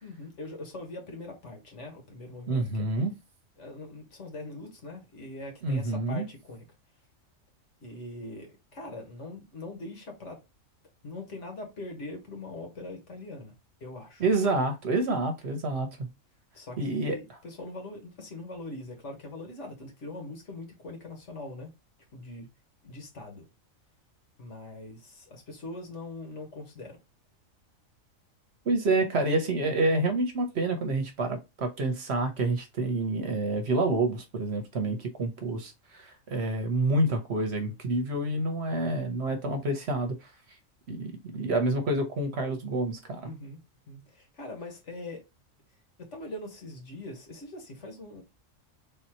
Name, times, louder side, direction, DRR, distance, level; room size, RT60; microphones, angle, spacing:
voice 1, 0.0-2.9 3.6-6.6 7.8-10.4 11.0-13.5 13.8-14.2 14.5-14.6 16.5-21.7 22.1-22.5 22.8-23.5 24.4-27.0 43.2-43.6 43.9-45.2 46.0-48.2, left 2 dB, 60° left, 1.6 m, -42 dB
voice 2, 2.5-3.2 5.6-6.3 14.2-16.1 16.8-17.2 28.6-40.1 40.9-43.3, right 2 dB, 55° right, 1.1 m, -28 dB
3.7 x 2.8 x 4.3 m
omnidirectional pair, 1.4 m